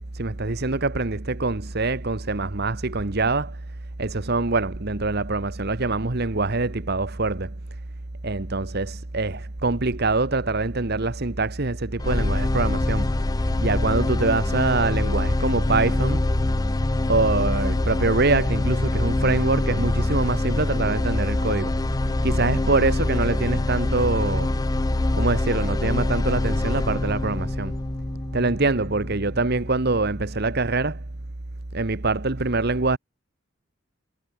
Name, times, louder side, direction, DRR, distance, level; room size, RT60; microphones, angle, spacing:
voice 1, 0.0-3.6 4.0-7.5 8.2-13.1 13.6-16.3 17.1-21.8 22.2-24.5 25.1-27.8 28.3-31.0 31.7-33.0, right 3 dB, 50° right, 1.3 m, -24 dB
sound 1, 12.0-30.0, left 2 dB, 20° left, 0.4 m, -24 dB
head